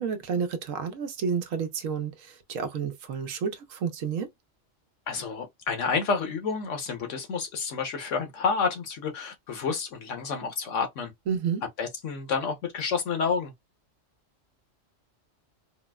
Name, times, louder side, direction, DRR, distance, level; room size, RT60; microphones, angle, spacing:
voice 1, 0.0-4.3 11.3-11.6, right 6 dB, 80° right, 1.1 m, -30 dB
voice 2, 5.1-11.1 11.8-13.5, left 5 dB, 70° left, 1.3 m, -29 dB
4.3 x 2.0 x 2.3 m
omnidirectional pair, 1.3 m